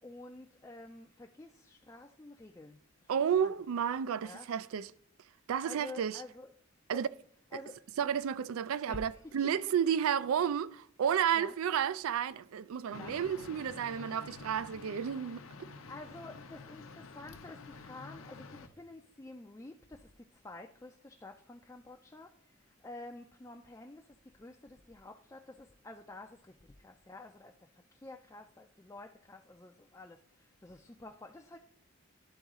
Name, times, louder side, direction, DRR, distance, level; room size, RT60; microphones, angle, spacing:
voice 1, 0.0-3.1 3.4-3.5 4.2-4.5 5.6-6.5 6.9-7.0 7.5-7.8 8.9-9.6 11.3-11.5 12.9-13.1 15.9-31.6, left 2 dB, 15° left, 0.4 m, -50 dB
voice 2, 3.1-4.9 5.5-6.2 6.9-7.1 8.0-15.4, right 8 dB, 80° right, 0.3 m, -31 dB
sound 1, 12.9-18.7, left 4 dB, 70° left, 0.7 m, -49 dB
11.5 x 4.0 x 3.6 m
head